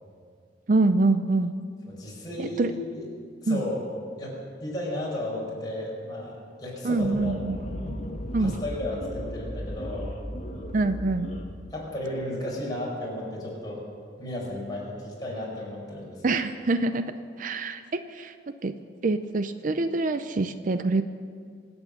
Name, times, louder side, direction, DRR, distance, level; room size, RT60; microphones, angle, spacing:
voice 1, 0.7-1.5 2.4-2.7 3.5-3.6 6.8-7.6 8.3-8.5 10.7-11.3 16.2-17.1 17.4-18.3 18.6-18.7 19.0-21.0, right 3 dB, 45° right, 10 dB, 0.5 m, -25 dB
voice 2, 1.9-3.1 3.4-3.8 4.2-7.4 8.4-10.1 11.7-13.8 14.2-16.2, left 1 dB, 20° left, -4 dB, 5.4 m, -34 dB
sound 1, 7.0-11.4, equal, 40° left, 1.6 m, -35 dB
25.0 x 8.9 x 6.5 m, 2.1 s
head